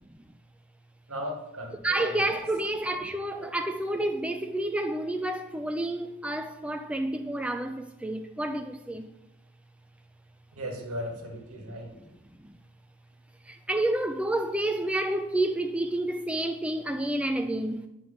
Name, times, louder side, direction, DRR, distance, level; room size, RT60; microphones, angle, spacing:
voice 1, 1.1-2.4 3.4-3.5 10.5-12.0, equal, 70° right, 1.7 m, -37 dB
voice 2, 1.8-9.0 12.4-12.6 13.5-17.9, right 1 dB, 5° right, 0.4 m, -29 dB
9.3 x 6.0 x 5.2 m
head